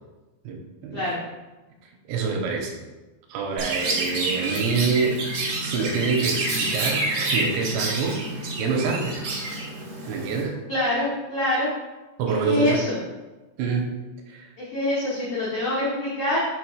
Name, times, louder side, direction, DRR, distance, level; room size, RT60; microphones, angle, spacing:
voice 1, 0.4-1.1 2.1-2.8 3.3-5.2 5.6-9.2 10.0-10.6 12.2-12.8 13.6-13.9 14.3-14.5, right 5 dB, 80° right, 1 dB, 3.0 m, -26 dB
Chirp tweet, 3.6-10.4, right 2 dB, 60° right, 2.6 m, -28 dB
voice 2, 10.7-11.7 12.4-13.0 14.6-16.4, left 1 dB, 90° left, -8 dB, 1.6 m, -25 dB
7.0 x 3.5 x 4.8 m, 1.2 s
omnidirectional pair, 5.5 m